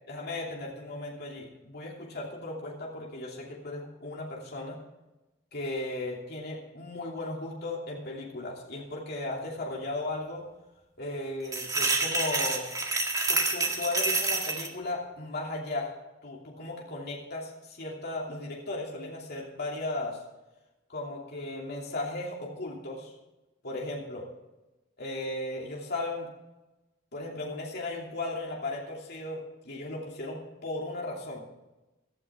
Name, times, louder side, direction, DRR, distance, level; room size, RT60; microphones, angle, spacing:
voice 1, 0.1-4.8 5.5-10.4 11.0-12.6 13.3-15.9 16.2-20.2 20.9-23.1 23.6-24.3 25.0-26.3 27.1-31.4, left 2 dB, 55° left, -2 dB, 2.8 m, -36 dB
sound 1, 11.5-14.7, right 3 dB, 15° right, 1.8 m, -28 dB
16.5 x 12.5 x 3.6 m, 1.0 s
head